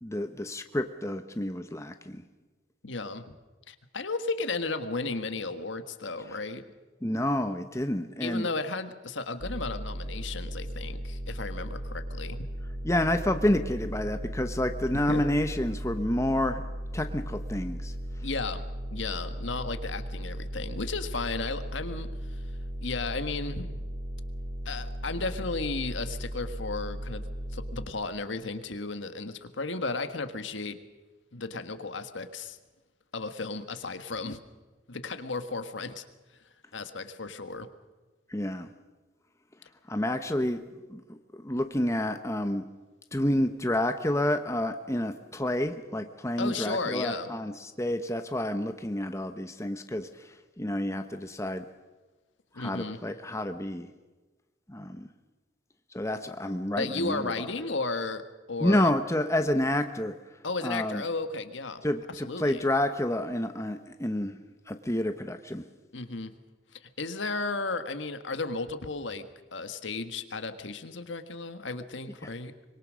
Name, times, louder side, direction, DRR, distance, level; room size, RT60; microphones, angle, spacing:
voice 1, 0.0-2.2 7.0-8.5 12.8-16.6 16.9-17.9 38.3-38.7 39.9-40.6 40.9-41.0 41.3-42.6 43.1-47.5 47.8-50.1 50.6-51.6 52.6-53.9 54.7-55.1 55.9-57.2 58.6-60.1 60.6-61.0 61.8-64.4 64.7-65.6, left 1 dB, 15° left, 8 dB, 1.0 m, -29 dB
voice 2, 2.8-3.2 3.7-6.6 8.2-12.4 15.1-15.2 18.2-18.6 18.9-22.5 22.8-23.8 24.6-30.8 31.3-32.6 33.1-34.4 34.9-36.0 36.7-37.7 46.4-47.3 52.5-53.0 56.8-58.9 60.4-61.8 62.1-62.6 65.9-66.3 66.7-69.3 69.5-72.5, left 3 dB, 75° left, 9 dB, 1.5 m, -34 dB
sound 1, 9.4-27.9, equal, 75° right, 3.6 m, -36 dB
25.0 x 22.5 x 6.4 m, 1.2 s
head